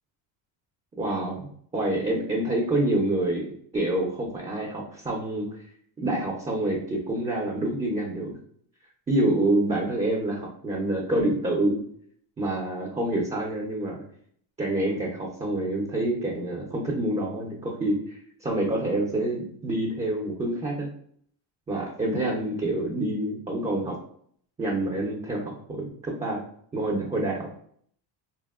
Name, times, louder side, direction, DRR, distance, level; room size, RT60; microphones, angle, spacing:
voice 1, 1.0-3.5 3.7-5.7 6.0-8.4 9.1-11.8 12.4-14.0 14.6-20.9 21.7-24.0 24.6-26.4 26.7-27.6, right 1 dB, 15° right, -2 dB, 0.4 m, -27 dB
2.8 x 2.0 x 2.3 m, 0.62 s
supercardioid pair, 85°, 47 cm